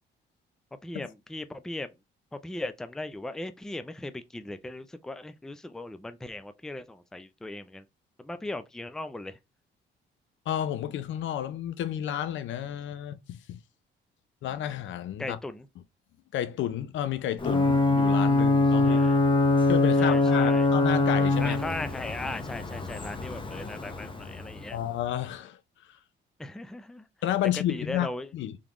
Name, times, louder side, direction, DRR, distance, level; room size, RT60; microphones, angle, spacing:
voice 1, 0.8-1.9 2.3-7.8 8.2-9.4 15.2-15.7 18.8-19.2 20.0-20.7 21.4-24.8 26.4-27.1 27.5-28.3, left 2 dB, 5° left, 0.4 m, -38 dB
voice 2, 10.5-13.6 14.4-15.4 16.3-19.0 19.7-21.6 24.7-25.6 25.9-26.0 27.2-28.6, left 11 dB, 75° left, 0.5 m, -31 dB
Ocean / Boat Water vehicle / Alarm, 17.4-25.0, left 2 dB, 25° left, 0.8 m, -24 dB
3.7 x 3.4 x 3.0 m
cardioid pair, 90°, 20 cm